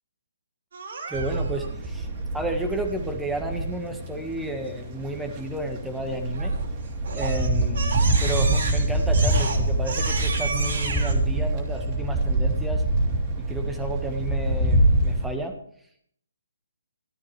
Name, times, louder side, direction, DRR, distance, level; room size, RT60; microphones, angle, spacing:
Crying sobbing, 0.7-1.7 6.3-6.7 7.0-11.1, right 4 dB, 60° right, 3.7 m, -32 dB
voice 1, 1.1-2.1 2.3-6.5 7.1-7.9 8.2-12.8 13.4-15.6, right 1 dB, 5° right, 4 dB, 1.7 m, -32 dB
sound 1, 1.1-15.2, right 1 dB, 30° right, 2.8 m, -25 dB
14.0 x 13.0 x 3.4 m, 0.64 s
figure-of-eight pair, 140°, 0 cm